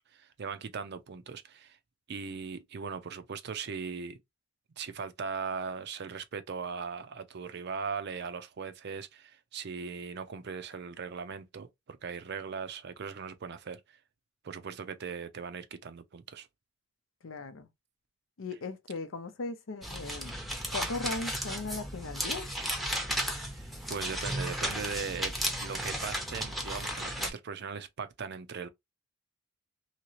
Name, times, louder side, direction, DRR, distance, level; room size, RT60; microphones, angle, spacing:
voice 1, 0.1-1.8 2.1-4.2 4.8-14.0 14.4-16.5 23.5-25.3 25.6-28.7, right 5 dB, 55° right, 0.5 m, -39 dB
voice 2, 17.2-17.7 18.4-20.4 20.7-22.5, left 3 dB, 80° left, 0.6 m, -38 dB
sound 1, 19.8-27.3, equal, ahead, 0.7 m, -34 dB
2.9 x 2.8 x 2.8 m
head